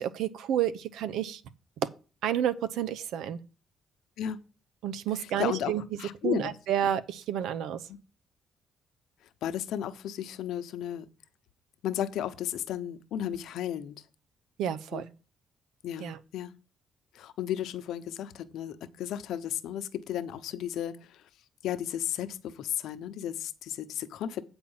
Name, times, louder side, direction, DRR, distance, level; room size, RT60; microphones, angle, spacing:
voice 1, 0.0-1.4 1.8-1.9 2.2-3.4 4.8-5.8 6.2-7.9 14.6-15.1 16.0-16.2, right 10 dB, 85° right, 0.7 m, -30 dB
voice 2, 5.1-5.7 6.0-6.5 9.2-11.1 11.8-14.0 14.9-15.0 15.8-16.5 17.1-21.2 21.6-24.4, left 10 dB, 80° left, 0.9 m, -34 dB
8.9 x 4.4 x 7.2 m
cardioid pair, 90°, 0 cm